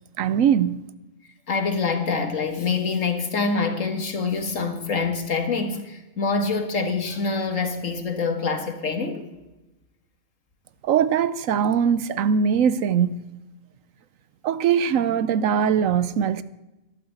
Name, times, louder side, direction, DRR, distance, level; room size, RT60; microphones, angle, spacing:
voice 1, 0.2-0.8 10.8-13.1 14.4-16.4, right 8 dB, 85° right, 1.1 m, -21 dB
voice 2, 1.5-9.2, left 4 dB, 80° left, 2.2 m, -25 dB
13.0 x 11.5 x 7.9 m
omnidirectional pair, 1.3 m